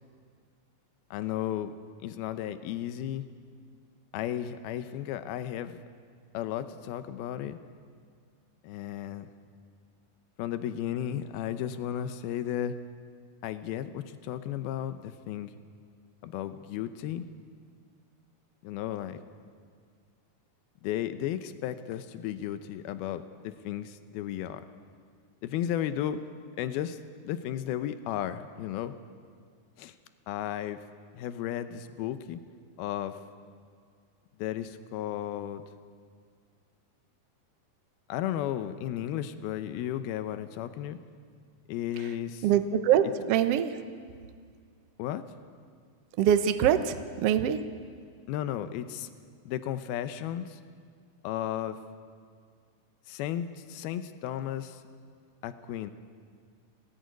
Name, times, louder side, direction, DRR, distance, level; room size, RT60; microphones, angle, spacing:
voice 1, 1.1-1.7 2.0-3.3 4.1-5.8 6.3-7.6 8.6-9.3 10.4-12.8 13.4-15.5 16.2-17.3 18.6-19.2 20.8-24.6 25.4-26.2 26.6-27.0 27.2-29.0 29.8-29.9 30.3-30.8 31.1-32.4 32.8-33.2 34.4-35.6 38.1-41.0 41.7-42.5 45.0-45.2 48.3-49.1 49.5-50.6 51.2-51.8 53.1-54.8 55.4-55.9, left 11 dB, 90° left, 11 dB, 2.8 m, -34 dB
voice 2, 42.4-43.7 46.2-46.9 47.2-47.6, right 9 dB, 85° right, 9 dB, 1.3 m, -23 dB
24.0 x 18.5 x 9.4 m, 2.1 s
omnidirectional pair, 4.2 m